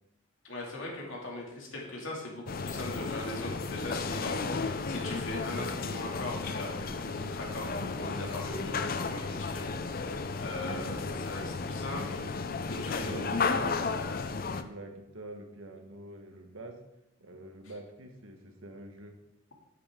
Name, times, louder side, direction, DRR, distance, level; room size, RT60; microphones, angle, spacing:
voice 1, 0.4-9.8 10.1-12.2 12.7-13.4, left 1 dB, 75° left, -2 dB, 2.6 m, -40 dB
sound 1, 2.5-14.6, left 4 dB, 45° left, 0.6 m, -34 dB
voice 2, 10.5-11.4 12.2-12.3 12.7-13.9 14.3-16.8 17.2-19.2, right 1 dB, 85° right, 4 dB, 1.4 m, -46 dB
9.7 x 8.4 x 3.8 m, 0.87 s
head